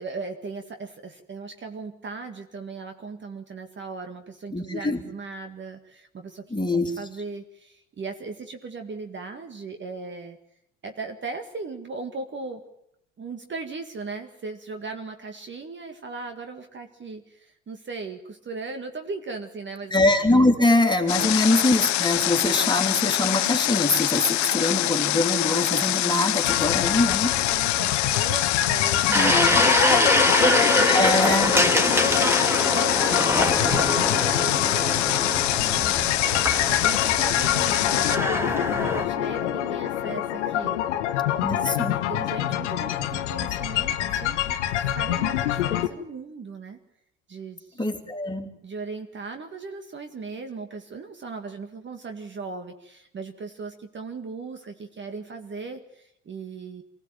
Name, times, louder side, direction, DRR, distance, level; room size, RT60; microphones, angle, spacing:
voice 1, 0.0-6.6 7.0-10.4 10.8-12.6 13.2-20.0 21.2-21.3 24.5-24.7 27.5-31.2 31.8-35.9 36.5-44.6 44.9-46.8 47.3-47.9 48.6-56.8, right 4 dB, 30° right, 7 dB, 2.1 m, -38 dB
voice 2, 4.5-5.0 6.5-6.9 19.9-27.4 29.1-29.7 30.9-31.6 41.4-42.0 47.8-48.5, left 2 dB, 10° left, 3 dB, 3.4 m, -23 dB
Water, 21.1-38.2, left 16 dB, 50° left, 1.1 m, -25 dB
sound 1, 26.4-45.9, left 12 dB, 75° left, 1.3 m, -26 dB
sound 2, 29.1-39.0, equal, 5° right, 3.2 m, -24 dB
24.5 x 16.0 x 9.1 m, 0.76 s
hypercardioid pair, 65°, 36 cm